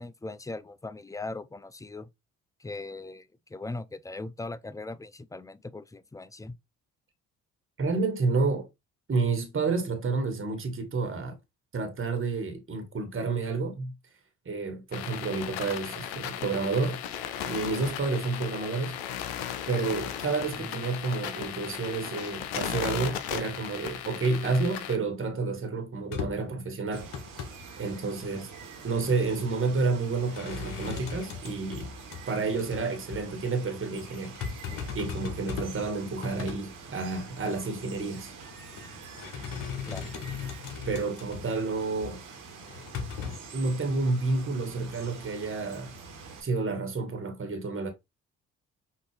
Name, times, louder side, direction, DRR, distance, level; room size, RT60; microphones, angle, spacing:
voice 1, 0.0-2.1 2.6-6.6 20.7-20.8 28.3-28.4 36.2-36.4 39.9-40.1, left 2 dB, 10° left, 0.4 m, -40 dB
voice 2, 7.8-8.7 9.1-11.4 11.7-13.9 14.4-17.0 17.4-18.9 19.7-27.1 27.8-28.5 28.8-31.9 32.3-34.3 34.9-38.3 40.9-42.2 43.5-45.9 46.4-47.9, right 3 dB, 35° right, 1.6 m, -30 dB
sound 1, 14.9-25.0, left 10 dB, 85° left, 0.7 m, -36 dB
sound 2, 26.1-26.6 26.9-27.5 30.2-32.2 32.6-32.8 33.1-33.2 34.0-35.9 36.1-36.6 37.1-37.2 38.5-38.8 39.1-41.5 42.0-42.2 42.7-43.4, left 6 dB, 65° left, 1.2 m, -37 dB
Water, 26.9-46.4, right 4 dB, 65° right, 1.8 m, -46 dB
5.9 x 2.8 x 3.2 m
hypercardioid pair, 55°, 35 cm